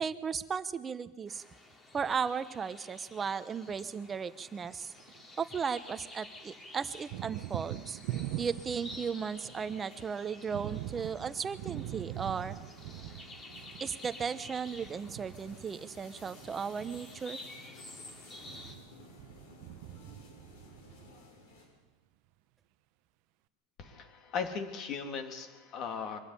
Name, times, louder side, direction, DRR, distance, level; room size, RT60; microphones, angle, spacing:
voice 1, 0.0-1.4 1.9-4.9 5.4-8.0 8.4-12.6 13.8-17.4, right 6 dB, 20° right, 12 dB, 1.0 m, -36 dB
sound 1, 1.3-18.7, left 2 dB, 20° left, 2.9 m, -51 dB
Thunder, 4.8-6.0 6.3-21.6, right 14 dB, 55° right, 0.9 m, -43 dB
sound 2, 8.9-21.7, left 3 dB, 80° left, 7.2 m, -57 dB
voice 2, 23.8-26.2, left 6 dB, 40° left, 6 dB, 2.8 m, -38 dB
23.5 x 13.0 x 9.9 m, 1.3 s
supercardioid pair, 145°, 0 cm